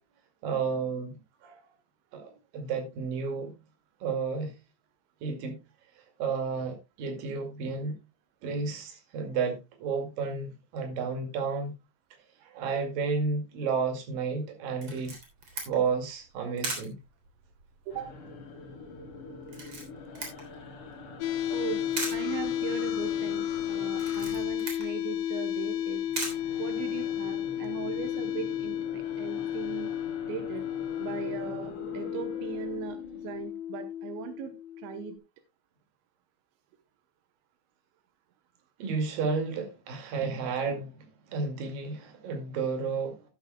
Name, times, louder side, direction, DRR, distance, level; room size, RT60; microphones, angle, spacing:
voice 1, 0.4-1.6 2.1-3.5 4.0-4.5 5.2-5.6 6.2-8.0 8.4-11.7 12.4-15.1 15.7-17.0 38.8-43.2, right 5 dB, 55° right, 3.7 m, -32 dB
Camera, 14.8-27.3, right 3 dB, 35° right, 3.7 m, -42 dB
sound 1, 17.9-25.2 25.5-33.5, left 3 dB, 50° left, 3.8 m, -45 dB
voice 2, 17.9-18.2 21.5-26.0 26.6-29.9 30.2-30.6 31.0-35.2, right 9 dB, 85° right, 3.4 m, -39 dB
sound 2, 21.2-35.2, left 11 dB, 80° left, 2.8 m, -33 dB
12.0 x 12.0 x 2.3 m
omnidirectional pair, 5.1 m